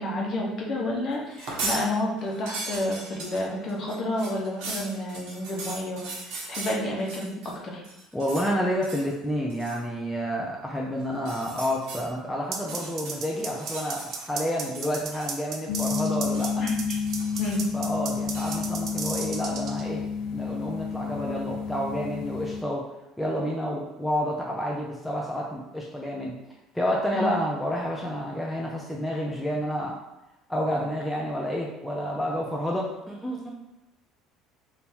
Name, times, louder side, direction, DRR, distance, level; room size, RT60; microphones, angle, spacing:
voice 1, 0.0-7.8 16.6-17.0 17.4-17.7 27.1-27.3, left 1 dB, 40° left, -2 dB, 1.0 m, -30 dB
sound 1, 1.3-1.8 2.2-7.5 7.8-8.5 8.8-9.1 9.5-9.8 11.1-12.0 12.6-14.3 14.6-15.5 15.8-16.5 16.9-17.8 18.3-18.6, right 3 dB, 65° right, 1.1 m, -38 dB
voice 2, 8.1-16.6 17.7-20.0 20.3-22.8 23.2-26.3 26.7-30.0 30.5-33.5, equal, 5° left, -4 dB, 0.5 m, -29 dB
sound 2, 12.5-19.8, right 5 dB, 45° right, 0.6 m, -34 dB
sound 3, 15.7-22.6, left 5 dB, 65° left, 0.3 m, -30 dB
3.6 x 2.7 x 4.4 m, 0.94 s
cardioid pair, 135°, 0 cm